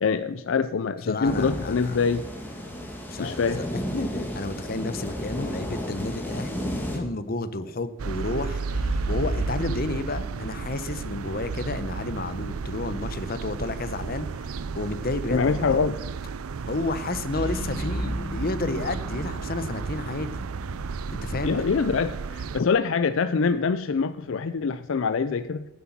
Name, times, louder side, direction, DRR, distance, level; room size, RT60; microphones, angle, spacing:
voice 1, 0.0-2.2 3.2-3.6 15.3-16.0 21.4-25.7, left 5 dB, 65° left, 12 dB, 0.4 m, -24 dB
voice 2, 1.1-2.0 3.1-15.8 16.7-20.3 21.1-21.6, left 2 dB, 45° left, 12 dB, 0.8 m, -31 dB
sound 1, 1.2-7.0, equal, 10° left, 1.9 m, -33 dB
sound 2, 4.2-4.6 8.7-12.3 17.3-21.4, equal, 85° left, 4.9 m, -35 dB
sound 3, 8.0-22.6, right 5 dB, 90° right, 0.5 m, -33 dB
10.0 x 7.9 x 7.2 m, 0.99 s
head